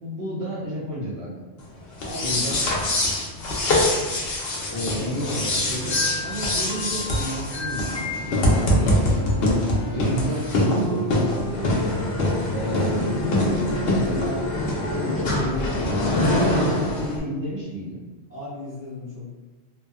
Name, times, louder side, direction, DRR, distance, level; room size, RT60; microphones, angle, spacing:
voice 1, 0.0-1.4 2.2-2.6 4.7-9.0 9.9-11.7 12.5-14.5 14.9-18.0, right 1 dB, 75° right, -7 dB, 1.1 m, -31 dB
sound 1, 1.9-17.2, left 1 dB, 65° left, 0.8 m, -24 dB
voice 2, 2.0-2.9 4.7-5.8 18.3-19.3, left 2 dB, 15° left, -12 dB, 0.9 m, -39 dB
little chimes, 5.5-9.0, left 4 dB, 35° right, 0.7 m, -34 dB
Wind instrument woodwind instrument, 8.5-17.1, right 2 dB, 30° left, 0.5 m, -37 dB
2.7 x 2.0 x 2.3 m, 1.2 s
omnidirectional pair, 1.1 m